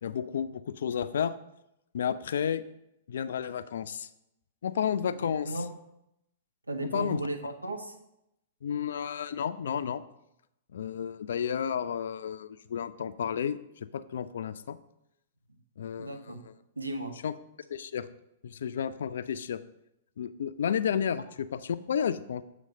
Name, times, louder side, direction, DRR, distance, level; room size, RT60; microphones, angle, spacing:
voice 1, 0.0-1.3 1.9-2.6 3.1-4.1 4.6-5.5 6.8-7.2 8.6-10.0 10.7-14.8 15.8-16.5 17.2-17.3 17.7-18.1 18.4-19.6 20.2-22.4, left 8 dB, 65° left, 13 dB, 0.3 m, -32 dB
voice 2, 5.1-5.7 6.7-7.9 16.0-16.4 16.8-17.1, right 2 dB, 90° right, 6 dB, 0.8 m, -35 dB
7.6 x 3.2 x 5.1 m, 0.84 s
figure-of-eight pair, 110°, 0 cm